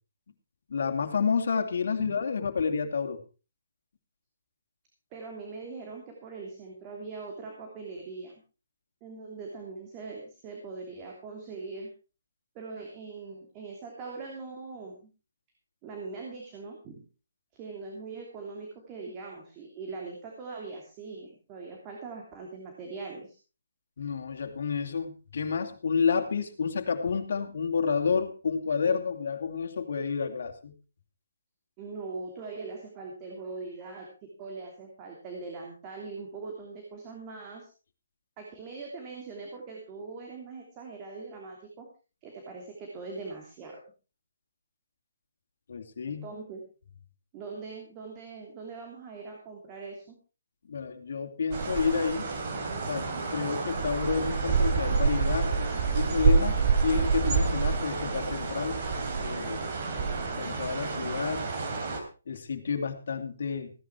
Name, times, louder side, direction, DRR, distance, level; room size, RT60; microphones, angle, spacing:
voice 1, 0.7-3.2 24.0-30.7 45.7-46.2 50.7-52.3 52.9-55.6 55.9-58.8 59.1-59.6 60.4-61.5 62.3-63.7, left 5 dB, 60° left, 4 dB, 2.7 m, -30 dB
voice 2, 5.1-8.3 9.0-11.9 12.5-15.0 15.8-17.0 17.5-23.4 31.8-37.7 38.4-41.9 42.2-43.8 46.2-46.7 47.3-50.2, right 4 dB, 20° right, 1 dB, 2.9 m, -41 dB
sound 1, 51.5-62.0, right 5 dB, 35° right, 3.3 m, -28 dB
16.0 x 10.5 x 4.6 m, 0.34 s
hypercardioid pair, 160°, 0 cm